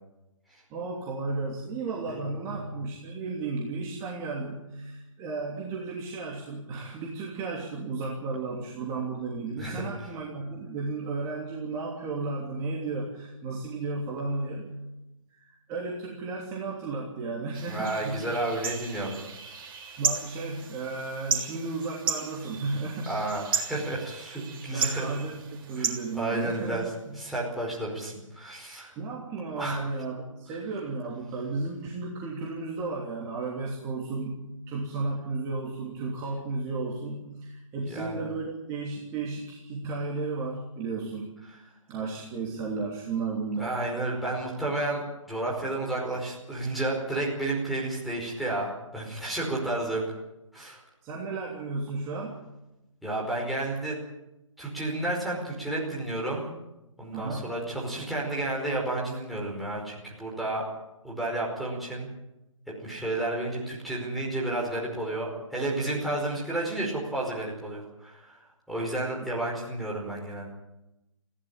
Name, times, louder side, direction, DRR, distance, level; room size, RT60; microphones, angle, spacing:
voice 1, 0.7-14.8 15.3-18.3 20.0-23.2 24.7-27.3 27.7-27.8 29.0-41.3 41.6-43.7 51.0-52.4 57.1-57.6, right 3 dB, 20° right, -3 dB, 3.1 m, -34 dB
voice 2, 2.1-2.7 9.6-9.9 17.7-19.2 23.1-25.1 25.8-26.8 27.1-28.9 29.6-29.8 37.8-38.2 43.6-50.0 50.5-50.8 53.0-54.0 54.6-56.5 57.0-60.6 61.0-62.1 62.7-68.4 68.7-70.5, right 2 dB, ahead, -5 dB, 5.1 m, -31 dB
sound 1, 17.5-26.9, right 6 dB, 40° right, 3.4 m, -35 dB
20.0 x 15.5 x 9.1 m, 0.94 s
figure-of-eight pair, 145°, 17 cm